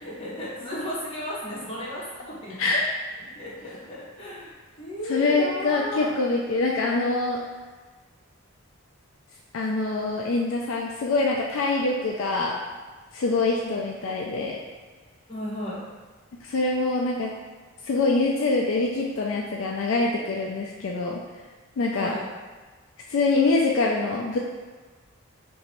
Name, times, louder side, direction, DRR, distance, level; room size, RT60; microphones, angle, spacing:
voice 1, 0.0-2.6 3.2-4.5 4.8-6.1 13.6-13.8 15.3-15.8 21.9-22.2, left 1 dB, 25° left, -8 dB, 1.2 m, -34 dB
voice 2, 5.1-7.4 9.5-12.6 13.1-14.6 16.4-17.3 17.8-21.2 21.8-22.1 23.1-24.4, left 3 dB, 65° left, -1 dB, 0.3 m, -24 dB
3.0 x 2.6 x 4.3 m, 1.4 s
head